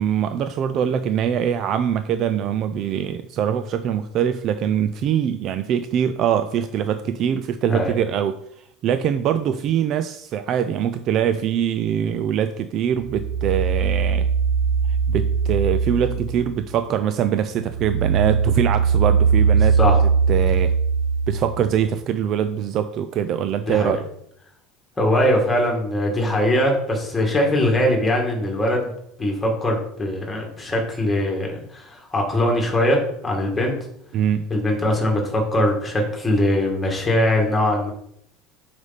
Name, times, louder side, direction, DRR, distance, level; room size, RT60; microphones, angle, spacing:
voice 1, 0.0-8.4 8.8-14.3 15.1-19.8 20.3-20.7 21.3-24.0 34.1-34.5, right 9 dB, 40° right, 10 dB, 0.4 m, -23 dB
sound 1, 13.0-16.9 17.3-21.8, right 6 dB, 80° right, 0.8 m, -20 dB
voice 2, 23.7-24.0 25.0-28.9 29.2-33.7 34.5-37.9, left 1 dB, 10° left, 0 dB, 1.9 m, -21 dB
8.0 x 5.3 x 4.1 m, 0.71 s
cardioid pair, 160°, 0 cm